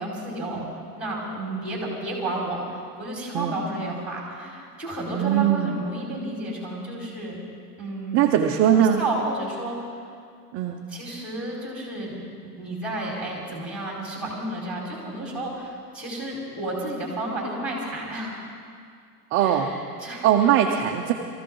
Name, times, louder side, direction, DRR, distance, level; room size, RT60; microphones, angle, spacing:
voice 1, 0.0-7.4 7.8-8.2 8.7-10.1 10.9-18.4 19.4-20.5, right 1 dB, ahead, -3 dB, 4.6 m, -32 dB
voice 2, 5.1-5.8 8.1-9.0 10.5-10.9 19.3-19.8 20.2-21.1, right 10 dB, 30° right, 3 dB, 0.7 m, -21 dB
23.0 x 15.0 x 3.9 m, 2.3 s
supercardioid pair, 140°, 47 cm